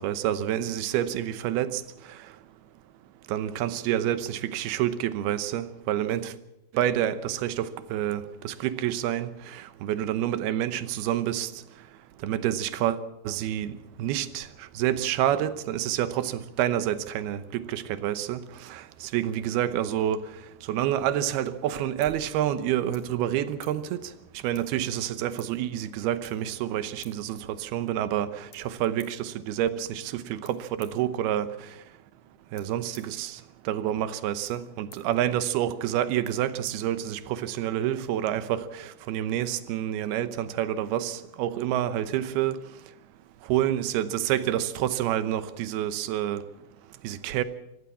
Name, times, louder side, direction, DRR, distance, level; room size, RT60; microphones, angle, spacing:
voice 1, 0.0-1.8 3.3-6.3 6.7-11.5 12.2-13.0 13.3-13.7 14.0-20.2 20.7-24.1 24.4-31.5 32.5-33.4 33.7-42.6 43.5-46.4 47.0-47.4, right 11 dB, 85° right, 2.9 m, -28 dB
sound 1, 21.3-37.5, left 6 dB, 55° left, 4.3 m, -59 dB
24.0 x 15.5 x 7.2 m
omnidirectional pair, 4.4 m